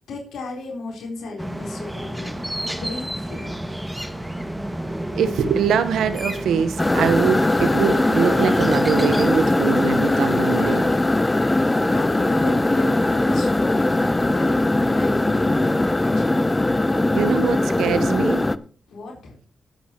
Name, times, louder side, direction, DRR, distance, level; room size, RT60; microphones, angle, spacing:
voice 1, 0.1-2.4 2.7-3.6 12.0-14.6 14.9-16.4 18.9-19.4, left 3 dB, 80° left, 4.0 m, -35 dB
sound 1, 1.4-9.5, right 1 dB, 5° right, 2.0 m, -30 dB
voice 2, 5.1-10.9 17.1-18.5, right 7 dB, 85° right, 1.1 m, -23 dB
sound 2, 6.8-18.6, left 2 dB, 20° left, 0.9 m, -20 dB
20.0 x 8.4 x 3.0 m
supercardioid pair, 45°, 0 cm